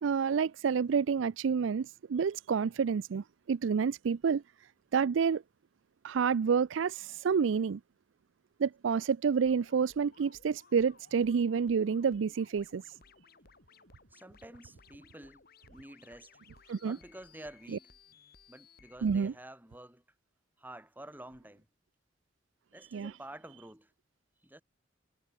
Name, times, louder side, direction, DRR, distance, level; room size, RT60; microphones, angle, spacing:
voice 1, 0.0-4.4 4.9-5.4 6.0-7.8 8.6-12.8 16.7-17.0 19.0-19.3 22.9-23.1, right 6 dB, 80° right, 0.4 m, -29 dB
sound 1, 9.4-19.0, left 4 dB, 55° left, 7.5 m, -61 dB
voice 2, 14.1-16.3 16.8-18.0 18.5-20.0 20.6-21.7 22.7-23.9 24.4-24.6, right 1 dB, 10° right, 4.8 m, -50 dB
head